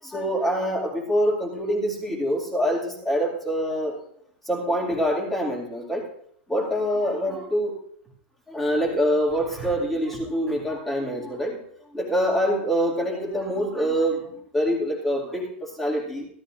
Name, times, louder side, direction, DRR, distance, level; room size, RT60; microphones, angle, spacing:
voice 1, 0.0-4.0 4.4-6.1 6.5-7.8 8.5-11.6 11.9-16.3, equal, 5° left, -2 dB, 2.3 m, -25 dB
16.5 x 13.0 x 2.5 m, 0.66 s
supercardioid pair, 175°, 6 cm